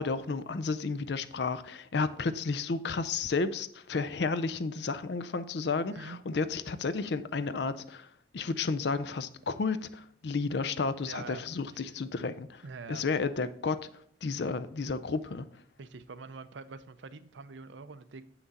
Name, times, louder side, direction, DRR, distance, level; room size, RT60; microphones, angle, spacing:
voice 1, 0.0-8.1 8.3-12.6 12.9-13.8 14.2-15.4, left 4 dB, 65° left, 0.5 m, -32 dB
voice 2, 5.9-6.2 11.0-11.5 12.6-13.0 15.8-18.3, right 4 dB, 75° right, 0.6 m, -45 dB
7.8 x 5.9 x 4.1 m
head